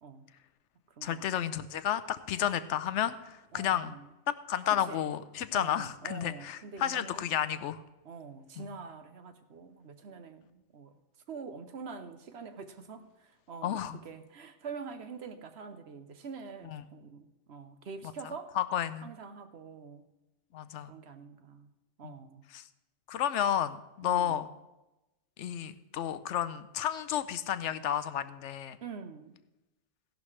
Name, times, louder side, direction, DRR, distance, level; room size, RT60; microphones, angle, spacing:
voice 1, 1.0-4.0 4.5-7.8 8.6-8.7 13.6-14.0 16.6-16.8 18.5-19.1 20.5-20.9 22.0-22.1 22.5-22.6 23.1-24.5 25.4-28.8, left 10 dB, 75° left, 0.9 m, -32 dB
voice 2, 3.5-4.1 4.7-5.1 5.5-7.3 8.0-10.9 11.3-18.6 19.0-20.1 20.9-21.7 22.0-22.4 24.0-24.4 28.8-29.3, right 5 dB, 65° right, 1.1 m, -45 dB
15.5 x 11.5 x 3.2 m
omnidirectional pair, 1.2 m